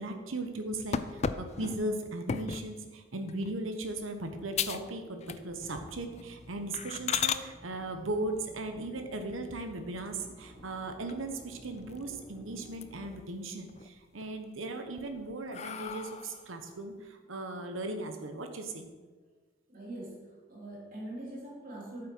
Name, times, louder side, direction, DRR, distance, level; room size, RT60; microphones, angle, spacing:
voice 1, 0.0-18.9, right 2 dB, 80° right, 6 dB, 1.1 m, -37 dB
sound 1, 0.9-2.7 3.3-3.6 4.0-4.1 4.5-4.9 5.2-5.7 6.1-6.2 6.7-7.4 9.4-10.1 10.6-10.7 11.1-11.2 11.5-12.3 12.6-13.2 13.6-14.3 14.8-16.5, left 7 dB, 35° left, 0.3 m, -35 dB
Drill, 5.4-14.0, equal, 25° right, 2.4 m, -54 dB
voice 2, 19.7-22.1, right 1 dB, 45° right, -4 dB, 2.9 m, -43 dB
8.7 x 7.6 x 4.6 m, 1.4 s
head